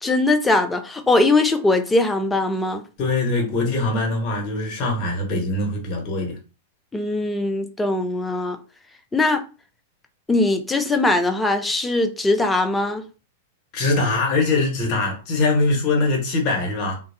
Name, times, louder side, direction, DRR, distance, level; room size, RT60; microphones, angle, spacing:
voice 1, 0.0-2.8 6.9-8.6 9.1-9.4 10.3-13.0, left 2 dB, 10° left, 0.4 m, -20 dB
voice 2, 3.0-6.4 13.7-17.0, left 2 dB, 40° left, 1.1 m, -22 dB
2.3 x 2.1 x 2.7 m
figure-of-eight pair, 100°, 0 cm